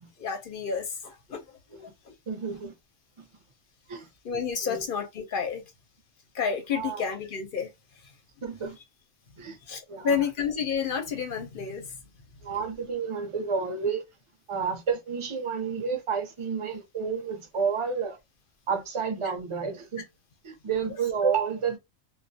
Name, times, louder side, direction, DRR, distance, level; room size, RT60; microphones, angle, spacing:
voice 1, 0.2-2.1 4.2-5.6 6.3-7.7 8.0-8.1 9.7-12.0, left 6 dB, 55° left, 0.7 m, -30 dB
voice 2, 2.3-2.8 3.2-3.3 3.9-4.1 4.6-4.8 6.7-7.0 8.4-8.8 9.4-9.6 9.9-10.2 12.4-14.0 14.5-18.2 18.7-20.1 20.4-21.8, right 6 dB, 40° right, 0.5 m, -30 dB
2.3 x 2.0 x 2.6 m
omnidirectional pair, 1.3 m